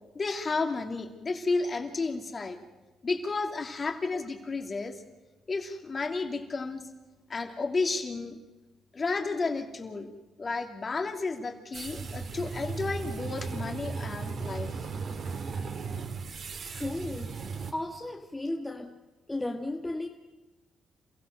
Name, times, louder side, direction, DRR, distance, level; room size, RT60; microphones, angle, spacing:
voice 1, 0.1-2.6 3.0-5.0 5.5-6.8 7.3-8.4 8.9-10.1 10.4-14.7, left 3 dB, 35° left, 4 dB, 2.7 m, -32 dB
sound 1, 11.7-17.7, right 5 dB, 55° right, 2.2 m, -36 dB
voice 2, 16.7-17.3 17.7-19.0 19.3-20.1, left 1 dB, 10° left, 2 dB, 1.5 m, -34 dB
28.5 x 16.0 x 6.8 m, 1.1 s
cardioid pair, 90°, 0 cm